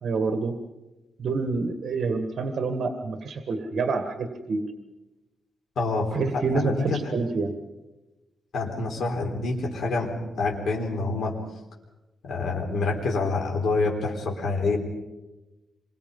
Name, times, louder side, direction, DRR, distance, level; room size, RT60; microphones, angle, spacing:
voice 1, 0.0-0.6 1.2-4.7 6.1-7.5, right 4 dB, 55° right, 7 dB, 1.7 m, -27 dB
voice 2, 5.8-6.1 6.3-7.0 8.5-10.1 10.4-11.3 12.2-14.8, left 3 dB, 70° left, 0 dB, 4.0 m, -27 dB
27.5 x 22.5 x 5.5 m, 1.1 s
wide cardioid pair, 140°, 0 cm